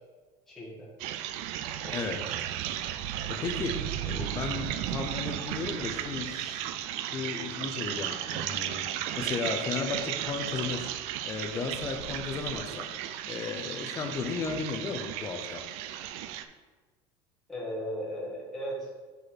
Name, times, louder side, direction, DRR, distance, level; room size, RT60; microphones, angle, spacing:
voice 1, 0.5-0.9 1.8-2.1 17.5-18.9, equal, 5° left, -7 dB, 1.5 m, -37 dB
sound 1, 1.0-16.4, right 11 dB, 55° right, 0.4 m, -35 dB
voice 2, 3.3-6.7 7.1-10.9 11.2-12.9 13.3-15.7, left 5 dB, 25° left, 5 dB, 0.6 m, -35 dB
6.3 x 5.1 x 4.2 m, 1.3 s
cardioid pair, 175°, 13 cm